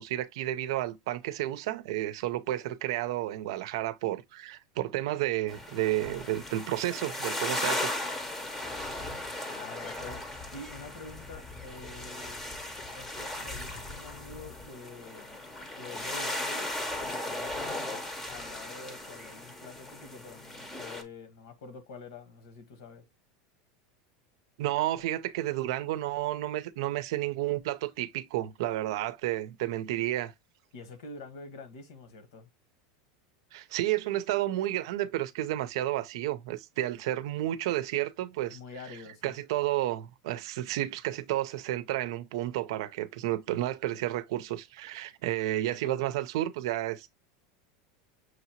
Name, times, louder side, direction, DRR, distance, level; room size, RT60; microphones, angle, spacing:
voice 1, 0.0-7.9 24.6-30.3 33.5-38.6 39.2-47.1, right 14 dB, 65° right, 0.6 m, -31 dB
sound 1, 5.5-21.0, left 1 dB, 10° left, 0.8 m, -37 dB
voice 2, 9.4-10.2 10.5-12.4 12.9-15.4 15.7-23.1 30.7-32.5 38.5-39.4, left 3 dB, 70° left, 1.4 m, -47 dB
6.2 x 2.8 x 2.9 m
supercardioid pair, 175°, 3 cm